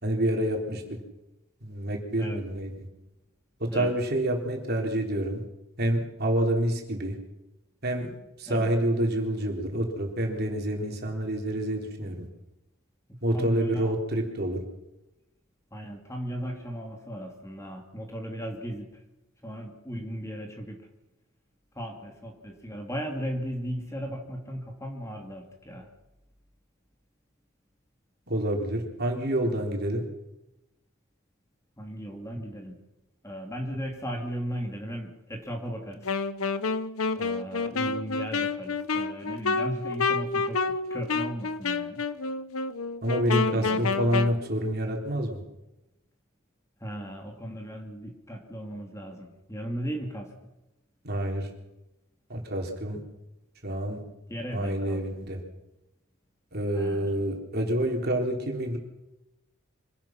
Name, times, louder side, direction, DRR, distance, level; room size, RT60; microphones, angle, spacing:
voice 1, 0.0-1.0 1.6-2.7 3.6-5.4 5.8-7.2 7.8-12.3 13.2-14.6 28.3-30.0 43.0-45.4 51.0-51.5 52.3-53.0 53.6-54.0 54.5-55.4 56.5-58.8, right 1 dB, 50° right, 1 dB, 4.0 m, -28 dB
voice 2, 2.2-2.5 3.7-4.0 8.5-8.7 13.3-14.0 15.7-19.0 19.4-20.9 21.7-25.9 31.8-32.8 33.2-36.1 37.1-42.0 43.5-43.9 46.8-50.3 54.3-55.1 56.7-57.1, equal, 15° left, 3 dB, 2.6 m, -36 dB
Wind instrument woodwind instrument, 36.0-44.4, left 4 dB, 80° left, 1.1 m, -29 dB
25.5 x 18.5 x 6.1 m, 0.97 s
head